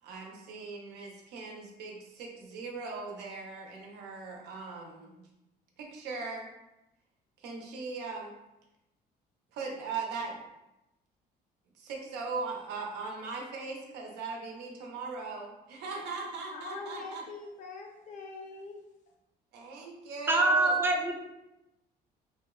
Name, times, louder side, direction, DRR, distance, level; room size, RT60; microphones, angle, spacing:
voice 1, 0.0-5.3 5.8-6.5 7.4-8.3 9.5-10.4 11.7-17.2 19.5-20.8, right 4 dB, 85° right, 0 dB, 0.6 m, -39 dB
voice 2, 16.5-18.8, left 4 dB, 45° left, 1 dB, 0.5 m, -43 dB
voice 3, 20.3-21.2, right 2 dB, 15° right, 3 dB, 0.3 m, -24 dB
2.9 x 2.0 x 2.2 m, 0.94 s
cardioid pair, 110°, 17 cm